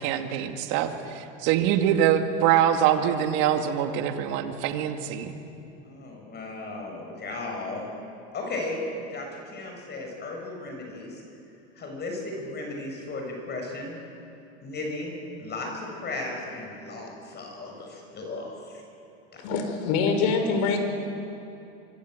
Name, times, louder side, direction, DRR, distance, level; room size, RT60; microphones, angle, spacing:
voice 1, 0.0-5.3, right 10 dB, 60° right, 6 dB, 2.4 m, -24 dB
voice 2, 5.8-7.9 8.3-11.2 11.7-14.0 14.6-18.8 19.3-19.4, left 2 dB, 30° left, 1 dB, 6.8 m, -35 dB
voice 3, 19.4-20.8, left 5 dB, 60° left, 6 dB, 5.1 m, -24 dB
25.0 x 25.0 x 8.0 m, 2.7 s
supercardioid pair, 115°, 35 cm